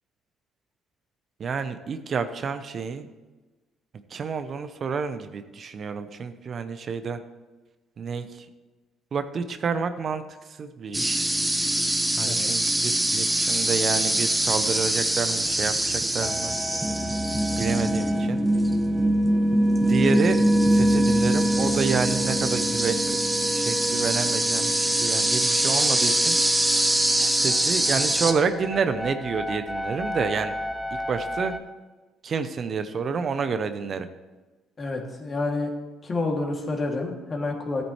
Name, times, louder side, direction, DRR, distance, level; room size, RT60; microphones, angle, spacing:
voice 1, 1.4-3.1 4.1-7.2 8.0-8.5 9.1-10.2 10.5-11.2 12.2-16.5 17.6-18.4 19.9-20.4 20.7-26.4 27.1-30.5 31.1-31.5 32.2-34.1, right 5 dB, 50° right, 9 dB, 0.8 m, -29 dB
sound 1, 10.9-28.3, right 1 dB, 10° right, 1.4 m, -23 dB
voice 2, 12.2-12.5 34.8-35.7 36.0-37.8, left 3 dB, 40° left, 0 dB, 2.5 m, -29 dB
sound 2, 16.2-31.6, equal, 5° left, 1.1 m, -34 dB
14.0 x 8.8 x 3.2 m, 1.2 s
supercardioid pair, 65°, 0 cm